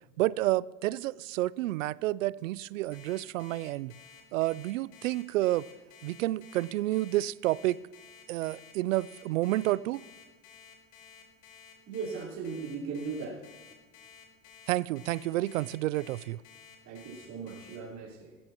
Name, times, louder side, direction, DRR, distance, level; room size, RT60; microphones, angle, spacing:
voice 1, 0.2-3.9 4.3-5.7 6.0-7.8 8.3-10.0 14.7-16.4, right 16 dB, 90° right, 0.5 m, -30 dB
Alarm, 2.9-17.8, left 7 dB, 60° left, 4.5 m, -53 dB
voice 2, 11.9-13.5 16.8-18.3, right 5 dB, 45° right, 4.1 m, -38 dB
18.0 x 15.5 x 3.0 m
supercardioid pair, 110°, 38 cm